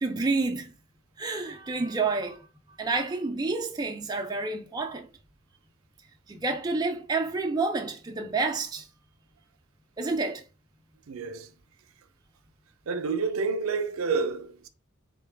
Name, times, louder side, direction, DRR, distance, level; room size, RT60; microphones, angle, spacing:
voice 1, 0.0-0.7 1.2-2.5 2.8-5.1 6.3-8.9 10.0-10.4, right 3 dB, 20° right, 0.3 m, -29 dB
voice 2, 11.1-11.5 12.9-14.7, right 4 dB, 75° right, 0.5 m, -29 dB
3.8 x 2.2 x 3.3 m
head